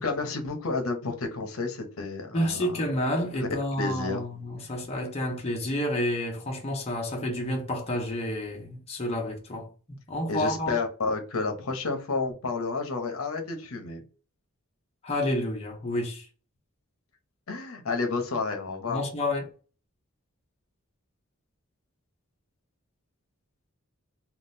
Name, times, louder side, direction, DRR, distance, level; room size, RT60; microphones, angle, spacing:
voice 1, 0.0-2.9 3.4-3.5 3.8-4.2 10.3-14.0 17.5-19.0, left 3 dB, 70° left, 0.8 m, -31 dB
voice 2, 2.3-9.7 10.1-10.8 15.0-16.3 18.9-19.5, left 1 dB, 30° left, 0.7 m, -29 dB
3.7 x 2.4 x 2.6 m
head